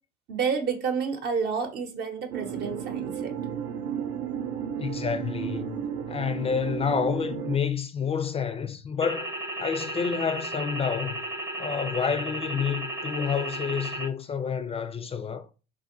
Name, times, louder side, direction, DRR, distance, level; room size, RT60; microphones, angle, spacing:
voice 1, 0.3-3.3, right 6 dB, 60° right, 0.8 m, -29 dB
sound 1, 2.3-7.6, right 8 dB, 75° right, 0.5 m, -33 dB
voice 2, 4.8-5.8 6.1-9.3 9.6-11.2 11.6-15.5, left 6 dB, 30° left, 0.4 m, -29 dB
sound 2, 9.0-14.1, right 1 dB, 15° right, 0.6 m, -34 dB
3.4 x 2.3 x 2.6 m
supercardioid pair, 80°, 20 cm